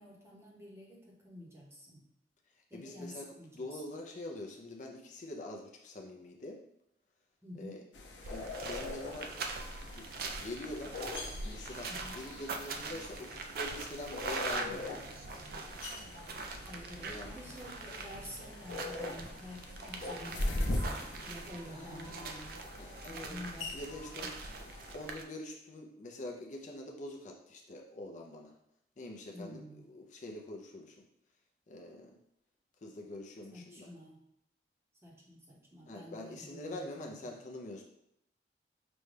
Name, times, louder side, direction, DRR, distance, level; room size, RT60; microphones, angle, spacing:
voice 1, 0.0-2.0 2.7-3.8 7.4-7.8 11.9-12.1 16.7-22.7 23.1-23.7 29.3-29.9 33.5-34.2 35.0-37.2, left 1 dB, 15° right, -3 dB, 0.7 m, -49 dB
voice 2, 2.7-6.6 7.6-7.8 8.2-9.3 9.8-11.0 11.4-15.1 17.0-17.4 21.7-22.4 22.8-23.4 23.7-24.4 24.9-28.5 29.0-31.0 31.7-32.2 32.8-33.9 35.9-37.8, left 1 dB, 45° left, 1 dB, 0.4 m, -45 dB
sound 1, 7.9-24.9, left 2 dB, 90° left, 0.6 m, -42 dB
sound 2, 8.2-25.2, right 3 dB, 55° right, 0.3 m, -43 dB
5.1 x 2.2 x 3.2 m, 0.77 s
head